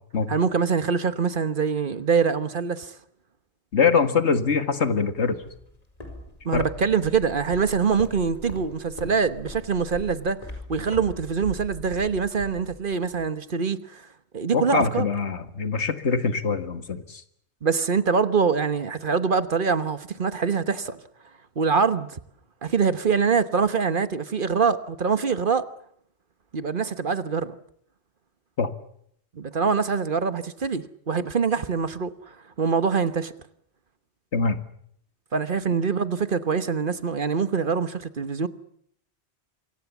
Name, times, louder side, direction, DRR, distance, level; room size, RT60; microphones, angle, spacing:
voice 1, 0.3-2.9 6.4-14.0 14.3-15.1 17.6-21.0 21.6-22.2 22.6-25.6 26.5-27.6 29.4-32.1 32.6-33.3 35.3-38.5, right 5 dB, 50° right, 1.3 m, -24 dB
voice 2, 3.7-5.4 6.5-6.6 14.5-17.2 28.6-28.7 34.3-34.6, left 5 dB, 85° left, 2.0 m, -23 dB
Walk footsteps, 5.4-13.3, left 1 dB, 35° left, 5.0 m, -41 dB
26.5 x 23.5 x 7.3 m
omnidirectional pair, 1.1 m